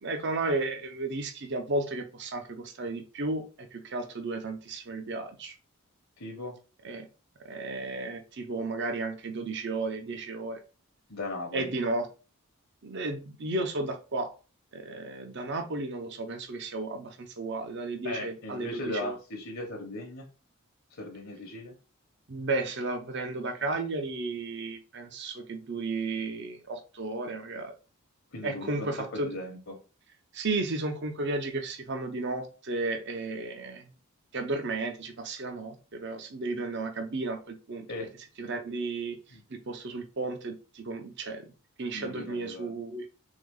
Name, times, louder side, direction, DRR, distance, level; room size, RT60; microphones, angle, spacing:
voice 1, 0.0-5.5 6.8-7.1 7.4-10.6 11.5-12.1 12.8-14.3 14.7-19.2 22.3-27.7 28.4-29.3 30.3-33.9 34.3-37.9 38.4-41.5 41.8-43.1, right 2 dB, 50° right, 5 dB, 0.7 m, -33 dB
voice 2, 6.2-6.6 11.1-11.7 18.0-20.3 20.9-21.7 28.3-29.8 37.9-38.1 39.3-39.4 41.9-42.7, left 2 dB, 65° left, 2 dB, 1.0 m, -38 dB
3.6 x 3.5 x 3.6 m, 0.34 s
head